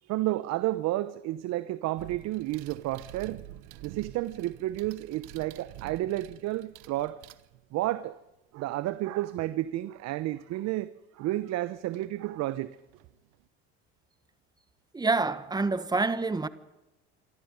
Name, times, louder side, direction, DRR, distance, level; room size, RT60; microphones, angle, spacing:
voice 1, 0.0-3.4 3.8-7.2 7.7-8.2 8.5-12.8, right 16 dB, 60° right, 1.0 m, -31 dB
sound 1, 2.0-7.9 10.4-10.5 11.9-12.1 12.5-13.5, right 15 dB, 75° right, 1.3 m, -48 dB
voice 2, 14.9-16.5, right 3 dB, 15° right, 1.4 m, -27 dB
25.0 x 14.0 x 9.6 m
supercardioid pair, 115°, 31 cm